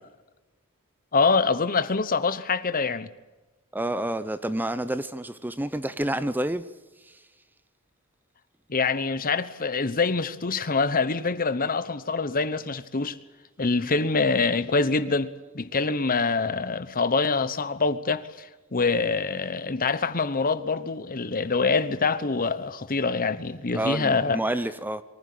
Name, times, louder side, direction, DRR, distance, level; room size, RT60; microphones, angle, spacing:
voice 1, 1.1-3.1 8.7-13.2 13.6-24.4, left 4 dB, 40° left, 1.0 m, -25 dB
voice 2, 3.7-6.6 23.7-25.0, right 1 dB, 10° right, 0.6 m, -28 dB
24.0 x 15.5 x 8.6 m
head